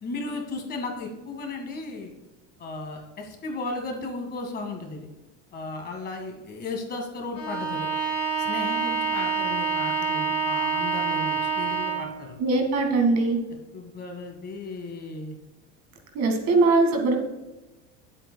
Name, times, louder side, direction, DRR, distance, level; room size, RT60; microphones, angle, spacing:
voice 1, 0.0-2.1 2.6-5.1 5.5-7.9 8.4-12.4 13.7-15.4, left 3 dB, 30° left, 2 dB, 1.9 m, -35 dB
Bowed string instrument, 7.3-12.2, right 5 dB, 55° left, 3.6 m, -27 dB
voice 2, 12.4-13.4 16.2-17.2, right 3 dB, 55° right, 3 dB, 2.1 m, -21 dB
20.5 x 8.1 x 2.3 m, 1.1 s
cardioid pair, 155°, 33 cm